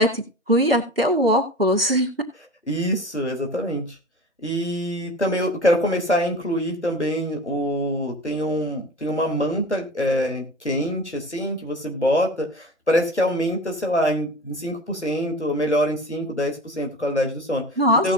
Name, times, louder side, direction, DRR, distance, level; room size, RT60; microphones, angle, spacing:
voice 1, 0.0-2.1 17.8-18.1, equal, 50° right, 2 dB, 2.2 m, -20 dB
voice 2, 2.7-3.9 4.4-17.6 18.0-18.1, equal, 60° left, 2 dB, 3.7 m, -24 dB
18.0 x 6.3 x 2.7 m, 0.32 s
figure-of-eight pair, 175°, 38 cm